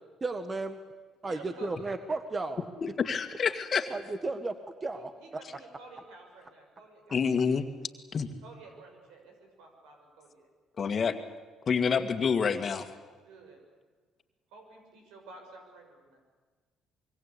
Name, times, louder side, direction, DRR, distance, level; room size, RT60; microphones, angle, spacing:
voice 1, 0.2-0.8 1.2-2.7 3.9-5.1, right 3 dB, 30° right, 9 dB, 1.5 m, -34 dB
voice 2, 1.3-2.0 4.9-7.7 8.4-10.5 13.2-13.6 14.5-16.2, right 3 dB, 80° right, 3 dB, 6.6 m, -52 dB
voice 3, 3.0-3.9 7.1-7.7 8.1-8.3 10.8-11.2 11.7-12.9, left 6 dB, 45° left, 7 dB, 2.0 m, -27 dB
25.0 x 23.0 x 8.5 m, 1.4 s
supercardioid pair, 65°, 0 cm